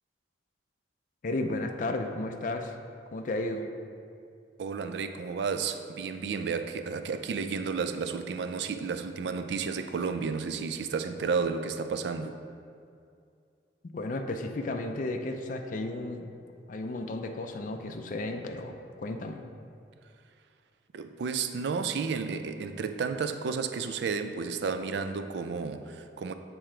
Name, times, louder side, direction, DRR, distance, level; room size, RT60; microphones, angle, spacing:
voice 1, 1.2-2.7 3.1-3.7 13.9-16.3 16.7-19.4, left 2 dB, 45° left, 5 dB, 0.4 m, -33 dB
voice 2, 4.6-12.4 20.9-26.3, right 5 dB, 70° right, 8 dB, 0.3 m, -32 dB
6.6 x 3.7 x 4.4 m, 2.4 s
head